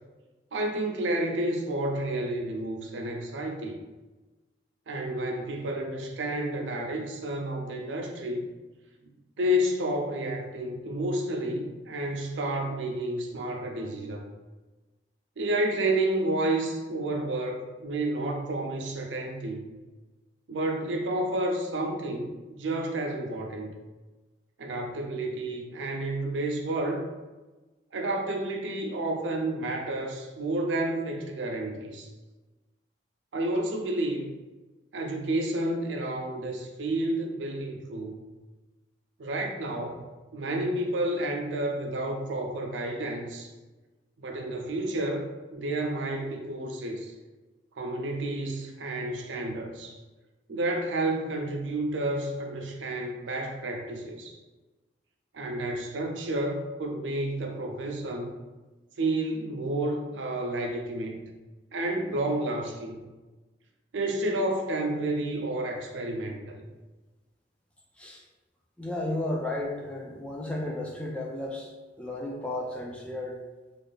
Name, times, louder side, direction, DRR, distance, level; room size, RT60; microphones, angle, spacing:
voice 1, 0.5-3.8 4.9-8.5 9.4-14.3 15.4-19.6 20.5-22.3 22.6-23.7 24.6-27.0 27.9-32.1 33.3-34.3 34.9-38.2 39.2-40.0 40.3-43.5 44.2-45.2 45.5-47.1 47.8-50.0 50.5-54.4 55.3-58.3 59.0-61.2 61.7-63.0 63.9-66.6, right 1 dB, 85° right, 2 dB, 0.5 m, -30 dB
voice 2, 68.8-71.7 72.0-73.4, left 1 dB, 5° left, -1 dB, 0.3 m, -33 dB
2.6 x 2.4 x 3.2 m, 1.2 s
head